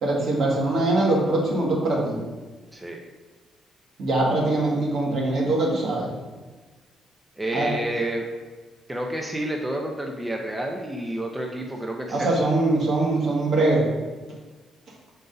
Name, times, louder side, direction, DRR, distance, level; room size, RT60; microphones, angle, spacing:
voice 1, 0.0-2.2 4.0-6.2 7.5-7.7 12.1-13.9, right 2 dB, 65° right, -3 dB, 1.8 m, -22 dB
voice 2, 2.7-3.0 7.4-8.3 8.9-12.5, right 1 dB, 10° right, 1 dB, 0.7 m, -30 dB
6.4 x 4.0 x 4.0 m, 1.3 s
cardioid pair, 90°, 0 cm